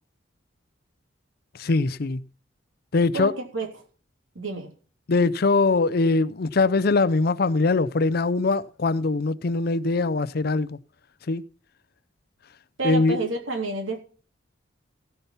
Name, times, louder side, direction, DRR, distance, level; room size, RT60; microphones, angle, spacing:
voice 1, 1.6-2.2 2.9-3.3 5.1-10.8 11.3-11.4 12.8-13.2, left 3 dB, 50° left, 0.5 m, -22 dB
voice 2, 3.1-3.7 4.3-4.7 12.8-14.0, right 3 dB, 90° right, 3.2 m, -29 dB
17.0 x 5.8 x 5.7 m
head